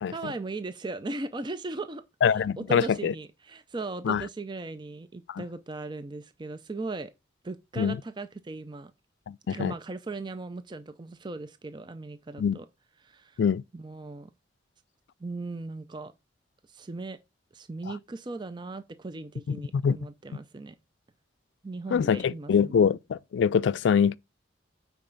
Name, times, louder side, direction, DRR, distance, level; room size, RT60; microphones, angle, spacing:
voice 1, 0.1-7.1 7.4-8.9 9.5-12.7 13.0-13.4 13.7-14.3 15.2-16.1 16.7-17.2 17.5-20.8 21.6-22.9, right 3 dB, 25° right, 0.4 m, -38 dB
voice 2, 2.2-3.1 4.0-4.2 5.3-5.4 7.8-8.0 9.3-9.7 12.4-12.6 13.4-13.6 19.5-20.0 21.9-24.2, left 7 dB, 70° left, 0.3 m, -24 dB
8.8 x 4.6 x 3.8 m
head